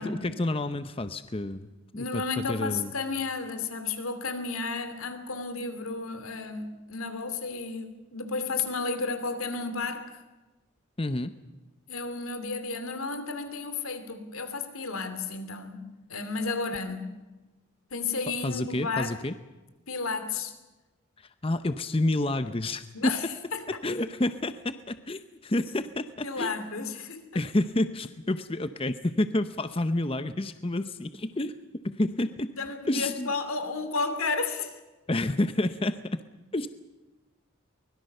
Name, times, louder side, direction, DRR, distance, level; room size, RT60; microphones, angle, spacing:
voice 1, 0.0-2.9 11.0-11.3 18.4-19.3 21.2-23.1 23.8-26.6 27.3-31.5 31.8-32.5 32.9-33.3 35.1-36.2 36.5-36.7, left 1 dB, 25° left, 11 dB, 0.7 m, -29 dB
voice 2, 2.0-10.2 11.9-17.2 17.9-19.2 19.9-20.5 22.9-23.6 26.2-27.4 32.5-34.8, left 4 dB, 90° left, 9 dB, 2.8 m, -32 dB
24.0 x 21.5 x 6.7 m, 1.1 s
head